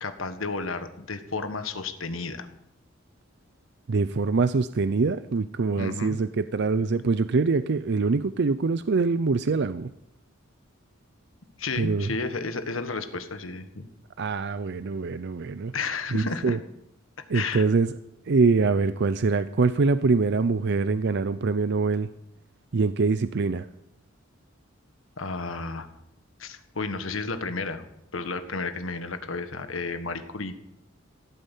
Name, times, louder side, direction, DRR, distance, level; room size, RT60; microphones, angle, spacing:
voice 1, 0.0-2.5 5.8-6.2 11.6-13.9 15.7-16.6 17.3-17.6 25.2-25.9 26.4-30.5, left 3 dB, 85° left, 9 dB, 1.6 m, -32 dB
voice 2, 3.9-9.9 11.8-12.1 14.2-15.7 16.1-16.6 17.3-17.9 18.3-22.1 22.7-23.7, right 4 dB, 60° right, 13 dB, 0.5 m, -24 dB
16.5 x 9.2 x 8.3 m, 0.81 s
head